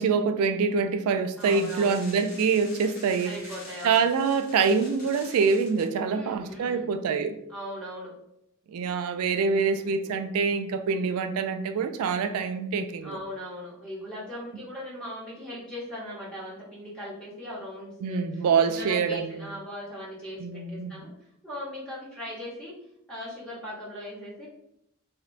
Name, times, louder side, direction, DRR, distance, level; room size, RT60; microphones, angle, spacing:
voice 1, 0.0-3.3 3.8-7.3 8.7-13.2 18.0-19.4 20.4-20.9, right 5 dB, 80° right, 0.3 m, -25 dB
sound 1, 1.4-5.9, left 2 dB, 40° left, 0.7 m, -47 dB
voice 2, 1.4-2.0 3.2-4.1 6.1-6.9 7.5-8.1 9.4-10.2 13.0-21.1 21.4-22.8 23.1-24.5, equal, 5° left, 0.7 m, -39 dB
2.8 x 2.1 x 2.4 m
head